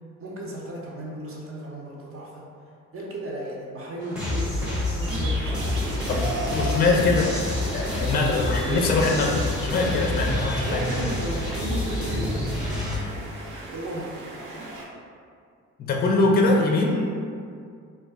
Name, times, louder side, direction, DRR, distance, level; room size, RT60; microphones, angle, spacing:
voice 1, 0.2-2.4 2.9-6.0 6.5-6.7 7.2-7.3 8.2-8.5 10.4-12.6 13.7-14.2, right 1 dB, 45° right, -3 dB, 0.7 m, -35 dB
sound 1, 4.0-11.5, right 1 dB, 70° right, 1.2 m, -38 dB
sound 2, 4.2-13.0, left 1 dB, 5° right, 0.7 m, -28 dB
sound 3, 5.0-14.8, right 1 dB, 85° right, 0.7 m, -38 dB
voice 2, 6.1-7.3 7.7-10.8 15.8-17.1, left 3 dB, 30° left, 0 dB, 0.4 m, -23 dB
2.3 x 2.2 x 3.4 m, 2.2 s
cardioid pair, 90°, 30 cm